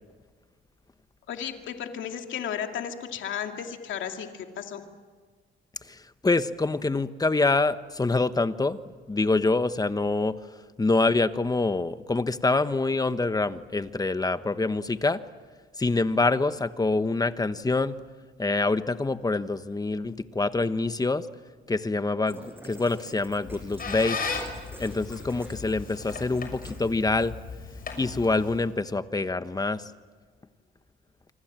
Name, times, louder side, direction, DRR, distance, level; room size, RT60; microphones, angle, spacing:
voice 1, 1.3-4.8, left 8 dB, 75° left, 4 dB, 2.4 m, -34 dB
voice 2, 6.2-8.8 9.1-10.3 10.8-15.2 15.8-18.0 18.4-21.3 21.7-24.2 24.8-27.3 28.0-29.8, left 3 dB, 20° left, 11 dB, 1.2 m, -25 dB
sound 1, 22.3-27.3, right 1 dB, 10° right, 7.9 m, -47 dB
Squeak, 23.3-28.8, left 4 dB, 45° left, 6.6 m, -37 dB
27.5 x 25.5 x 7.6 m, 1.5 s
cardioid pair, 90°, 20 cm